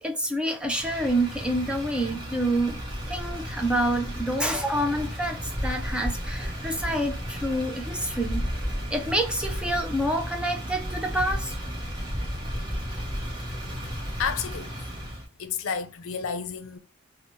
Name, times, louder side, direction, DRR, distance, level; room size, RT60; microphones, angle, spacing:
voice 1, 0.0-2.8 3.1-8.5 8.9-11.6, right 1 dB, 5° right, 0.3 m, -27 dB
Motor vehicle (road), 0.6-15.2, equal, 20° right, 0.7 m, -33 dB
voice 2, 14.2-14.7 15.4-16.8, left 6 dB, 80° left, 0.5 m, -31 dB
2.8 x 2.0 x 3.0 m
head